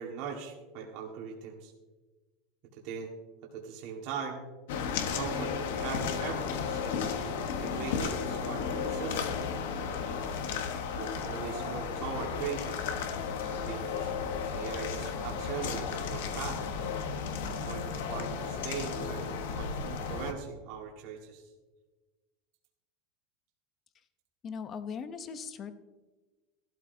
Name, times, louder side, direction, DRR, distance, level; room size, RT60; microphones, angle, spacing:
voice 1, 0.0-1.7 2.8-3.1 3.5-4.4 5.1-9.3 11.0-12.9 13.4-14.1 14.5-16.6 17.4-21.5, right 6 dB, 50° right, 0 dB, 1.6 m, -40 dB
sound 1, 4.7-20.3, left 6 dB, 80° left, 1.2 m, -34 dB
voice 2, 24.4-25.7, left 6 dB, 25° left, 11 dB, 0.7 m, -39 dB
15.0 x 12.5 x 2.7 m, 1.2 s
supercardioid pair, 170°, 0 cm